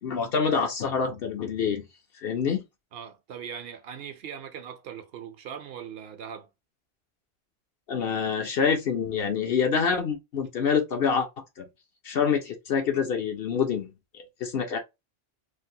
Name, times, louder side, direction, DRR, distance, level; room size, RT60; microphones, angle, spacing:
voice 1, 0.0-1.8 2.2-2.6 7.9-11.3 11.6-11.7 12.0-14.8, left 6 dB, 65° left, 0.9 m, -26 dB
voice 2, 2.9-6.5, right 8 dB, 70° right, 0.8 m, -40 dB
3.3 x 2.1 x 2.7 m
omnidirectional pair, 1.1 m